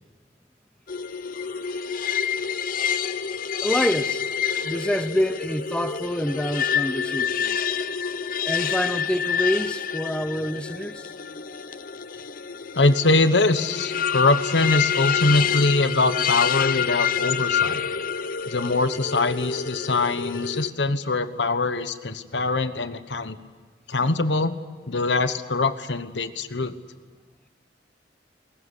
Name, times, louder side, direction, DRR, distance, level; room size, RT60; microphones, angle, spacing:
sound 1, 0.9-20.7, left 7 dB, 50° left, 0.8 m, -27 dB
voice 1, 3.6-4.3 4.6-7.6 8.4-11.1, equal, 5° left, 0.7 m, -27 dB
voice 2, 12.7-17.8 18.5-23.4 23.9-24.6 24.9-26.7, left 3 dB, 90° left, 1.2 m, -23 dB
22.0 x 19.0 x 9.8 m
head